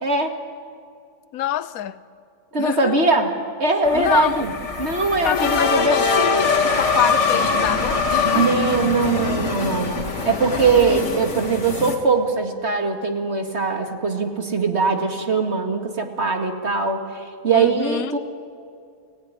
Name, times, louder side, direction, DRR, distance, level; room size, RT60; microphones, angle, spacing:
voice 1, 0.0-0.3 2.5-3.3 3.6-4.5 4.8-6.0 8.3-18.2, right 4 dB, 45° right, 4 dB, 2.4 m, -21 dB
voice 2, 1.3-2.0 2.6-3.0 3.9-4.4 5.2-8.5 10.9-12.0 17.5-18.1, left 11 dB, 70° left, 15 dB, 1.2 m, -27 dB
sound 1, 3.8-12.0, left 4 dB, 50° left, 2.8 m, -23 dB
29.5 x 17.0 x 9.8 m, 2.3 s
omnidirectional pair, 1.6 m